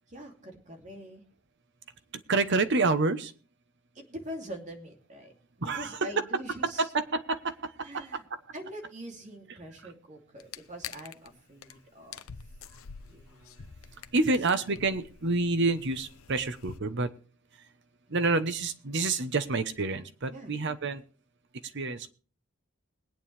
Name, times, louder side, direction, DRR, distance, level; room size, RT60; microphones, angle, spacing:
voice 1, 0.1-1.2 3.9-5.3 5.6-6.9 7.8-8.2 8.5-12.2 13.1-13.7 14.7-14.8 20.3-20.5, equal, 35° right, 2 dB, 2.7 m, -44 dB
voice 2, 2.1-3.3 5.6-6.1 6.6-8.2 14.1-17.1 18.1-21.0 21.7-22.1, right 3 dB, 55° right, 11 dB, 1.0 m, -28 dB
sound 1, 10.4-11.3 11.6-11.7 12.0-16.8, left 7 dB, 80° left, 0.7 m, -46 dB
21.5 x 9.2 x 3.3 m, 0.38 s
head